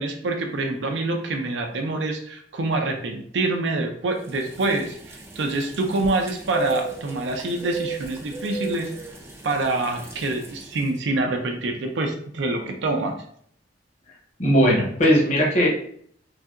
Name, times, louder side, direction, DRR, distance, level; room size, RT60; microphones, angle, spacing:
voice 1, 0.0-8.9 9.4-13.2, right 2 dB, 70° right, 3 dB, 0.5 m, -26 dB
sound 1, 4.2-10.9, right 3 dB, 15° right, 0.4 m, -36 dB
voice 2, 14.4-15.7, equal, 40° left, -2 dB, 0.9 m, -18 dB
3.3 x 2.7 x 2.4 m, 0.63 s
head